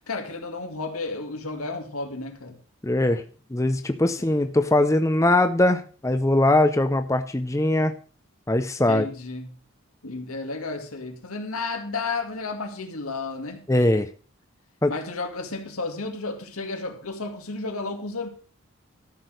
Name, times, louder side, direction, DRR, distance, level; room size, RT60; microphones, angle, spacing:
voice 1, 0.1-2.6 8.9-9.5 10.0-13.6 14.9-18.3, left 3 dB, 90° left, 2.3 m, -32 dB
voice 2, 2.8-3.2 3.5-7.9 8.5-9.1 13.7-14.1 14.8-14.9, left 1 dB, 15° left, 0.6 m, -21 dB
13.0 x 6.2 x 6.4 m
head